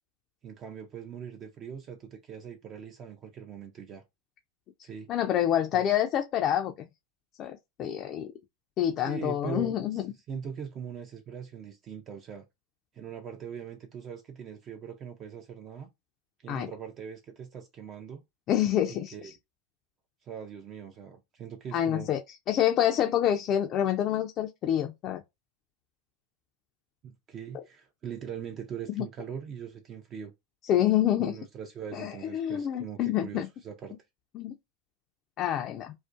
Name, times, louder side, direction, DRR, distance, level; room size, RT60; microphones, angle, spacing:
voice 1, 0.4-4.0 4.8-5.1 5.7-5.9 9.0-12.4 12.9-15.9 16.4-18.2 18.9-19.3 20.2-22.1 27.0-30.3 31.2-33.9, right 7 dB, 35° right, 0.4 m, -41 dB
voice 2, 5.1-6.9 7.4-8.3 8.8-10.0 16.5-16.7 18.5-19.3 21.7-22.2 22.5-25.2 29.0-29.1 30.6-31.3 31.9-33.5 34.3-34.5 35.4-35.9, left 11 dB, 40° left, 0.3 m, -27 dB
2.4 x 2.1 x 2.4 m
hypercardioid pair, 95°, 0 cm